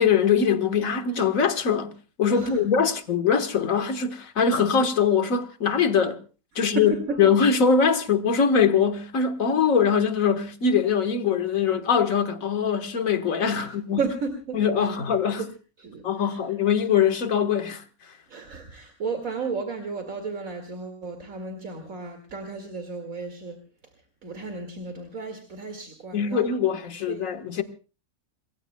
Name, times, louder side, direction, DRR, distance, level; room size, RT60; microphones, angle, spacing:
voice 1, 0.0-1.9 2.2-6.2 6.6-6.9 7.2-14.0 14.5-15.4 16.0-17.8 26.1-27.6, left 6 dB, 65° left, 1.8 m, -22 dB
voice 2, 2.3-2.9 6.5-7.2 13.6-13.7 14.0-14.9 15.8-16.4 18.3-23.6 24.2-26.5 26.9-27.6, right 4 dB, 65° right, 2.7 m, -34 dB
28.0 x 21.5 x 2.3 m
omnidirectional pair, 1.5 m